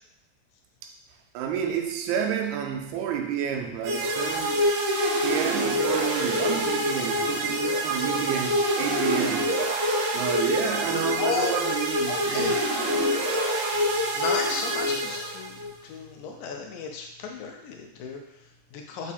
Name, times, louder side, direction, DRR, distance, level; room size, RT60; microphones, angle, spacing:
voice 1, 1.3-4.6 5.2-9.5 10.1-12.6, right 9 dB, 85° right, 2.0 m, -30 dB
sound 1, 3.8-15.7, equal, 70° right, 1.6 m, -26 dB
voice 2, 11.2-11.6 12.3-12.6 13.8-19.1, left 4 dB, 90° left, 2.2 m, -33 dB
5.3 x 2.4 x 4.1 m
omnidirectional pair, 3.4 m